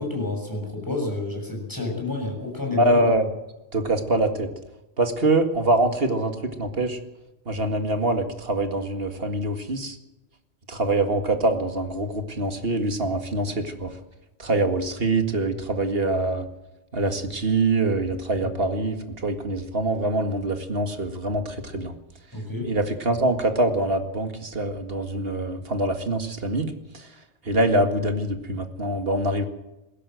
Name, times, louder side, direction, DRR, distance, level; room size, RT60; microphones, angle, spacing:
voice 1, 0.0-3.0 18.4-18.5 22.3-22.7, left 2 dB, 20° left, 0 dB, 7.0 m, -29 dB
voice 2, 2.8-3.2 3.7-4.5 5.0-7.0 7.5-10.0 10.7-13.9 14.4-16.5 16.9-21.9 22.7-27.0 27.5-29.4, right 2 dB, 60° right, 6 dB, 2.2 m, -24 dB
20.0 x 16.5 x 7.9 m, 0.98 s
omnidirectional pair, 1.1 m